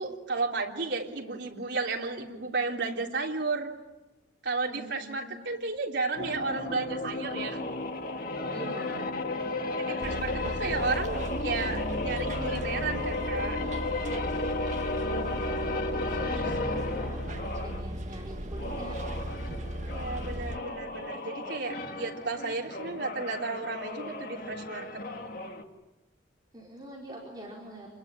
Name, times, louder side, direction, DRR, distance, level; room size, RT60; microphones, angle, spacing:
voice 1, 0.0-3.7 4.4-7.6 9.9-13.6 19.9-24.9, right 3 dB, 70° right, 0 dB, 3.4 m, -33 dB
voice 2, 4.6-5.4 8.5-9.1 15.0-19.1 26.5-27.9, right 1 dB, 20° right, -3 dB, 5.0 m, -44 dB
sound 1, 6.2-17.8 18.5-25.6, left 2 dB, 50° left, 2.1 m, -34 dB
Bus, 10.0-20.6, right 1 dB, 40° right, 1.5 m, -37 dB
27.5 x 21.5 x 10.0 m, 1.0 s
head